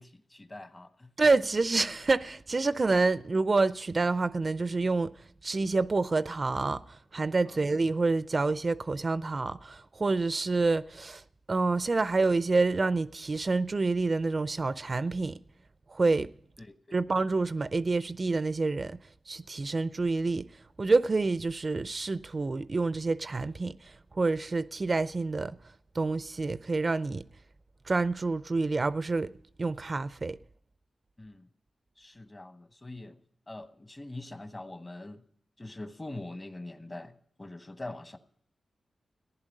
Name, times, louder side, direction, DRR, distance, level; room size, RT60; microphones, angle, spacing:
voice 1, 0.0-1.1 7.4-7.6 16.6-17.0 31.2-31.5 32.0-33.2 33.5-35.2 35.6-38.2, left 2 dB, 30° left, 1.1 m, -43 dB
voice 2, 1.2-5.1 5.4-6.8 7.1-11.2 11.5-15.4 15.9-16.3 16.9-19.0 19.3-20.5 20.8-23.8 24.2-25.6 26.0-27.2 27.9-29.3 29.6-30.4, right 3 dB, 40° right, 0.4 m, -27 dB
15.0 x 10.5 x 5.3 m
cardioid pair, 65°, 0 cm